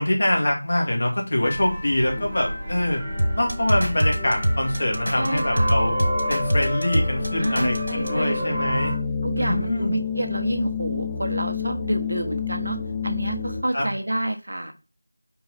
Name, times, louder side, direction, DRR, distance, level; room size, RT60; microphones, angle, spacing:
voice 1, 0.0-3.0 3.4-9.0 9.4-10.0 13.7-13.9, left 1 dB, 45° left, 0 dB, 2.4 m, -24 dB
sound 1, 1.4-9.0, right 1 dB, 15° right, 1.8 m, -31 dB
sound 2, 1.7-13.6, left 6 dB, 15° left, 0.3 m, -31 dB
sound 3, 3.2-8.1, equal, 85° right, 1.8 m, -24 dB
voice 2, 5.1-5.7 7.4-8.6 9.2-12.8 13.0-14.7, right 1 dB, 55° right, 5 dB, 1.3 m, -28 dB
5.5 x 4.6 x 4.3 m, 0.30 s
figure-of-eight pair, 170°, 0 cm